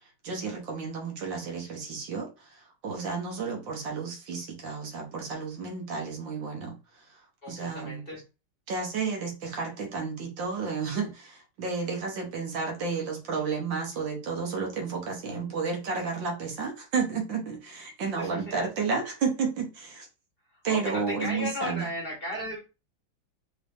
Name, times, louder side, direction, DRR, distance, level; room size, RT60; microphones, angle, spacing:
voice 1, 0.2-8.0 8.7-20.1 20.6-21.9, right 5 dB, 70° right, 1.6 m, -32 dB
voice 2, 7.4-8.2 18.2-18.3 18.6-18.7 20.7-22.6, equal, 30° left, 1.4 m, -35 dB
4.1 x 2.9 x 3.3 m
omnidirectional pair, 2.2 m